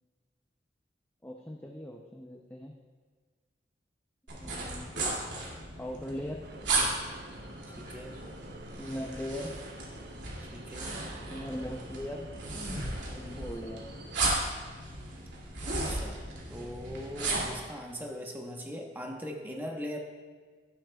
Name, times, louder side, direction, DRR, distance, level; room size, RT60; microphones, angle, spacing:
voice 1, 1.2-2.7 4.4-4.9 5.8-6.4 8.8-9.5 11.3-12.3 13.1-13.8, equal, 10° left, -1 dB, 0.5 m, -39 dB
sound 1, 4.3-17.6, right 2 dB, 80° right, 2.5 m, -35 dB
sound 2, 6.4-14.2, right 2 dB, 60° right, 0.9 m, -49 dB
voice 2, 7.8-8.2 10.5-10.9 13.1-13.5 15.6-16.2 16.5-20.0, equal, 10° right, 0 dB, 1.0 m, -40 dB
16.5 x 7.6 x 2.3 m, 1.5 s
head